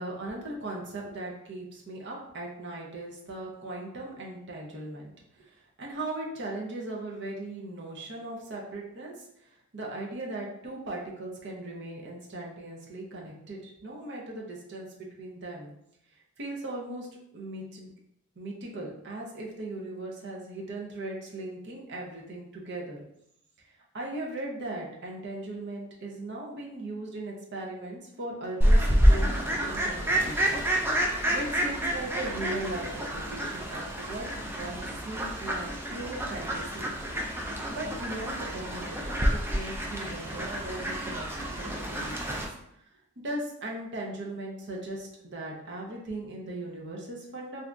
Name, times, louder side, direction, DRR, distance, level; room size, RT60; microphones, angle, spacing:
voice 1, 0.0-9.1 9.7-15.7 16.4-17.9 18.4-23.0 23.9-30.7 31.3-36.9 37.7-42.5 43.2-47.6, right 2 dB, 55° right, -2 dB, 0.7 m, -38 dB
Fowl, 28.6-42.5, equal, 10° right, 0.4 m, -28 dB
2.7 x 2.5 x 3.4 m, 0.76 s
head